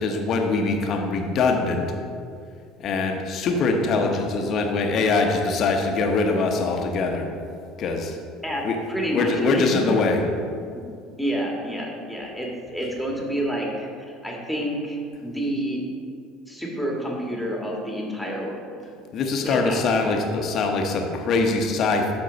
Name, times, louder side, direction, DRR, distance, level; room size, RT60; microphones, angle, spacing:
voice 1, 0.0-1.9 2.8-7.3 7.8-8.2 8.6-8.8 9.1-10.2 19.1-22.1, left 3 dB, 50° left, 3 dB, 1.1 m, -23 dB
voice 2, 8.9-10.0 10.7-10.8 11.2-13.9 14.2-15.8 16.5-18.8 19.4-20.1, right 1 dB, ahead, -2 dB, 2.1 m, -28 dB
12.5 x 4.6 x 4.1 m, 2.3 s
hypercardioid pair, 70°, 0 cm